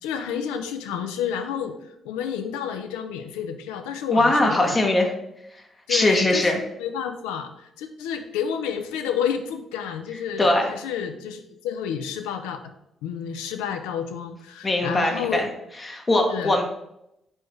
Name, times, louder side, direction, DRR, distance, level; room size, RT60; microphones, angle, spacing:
voice 1, 0.0-4.8 5.9-12.6 13.0-15.5 16.3-16.6, left 8 dB, 90° left, 7 dB, 0.4 m, -30 dB
voice 2, 4.1-5.1 5.9-6.6 10.4-10.7 14.6-15.5 15.8-16.6, left 1 dB, 35° left, 2 dB, 0.8 m, -21 dB
4.4 x 3.2 x 3.0 m, 0.81 s
hypercardioid pair, 50°, 0 cm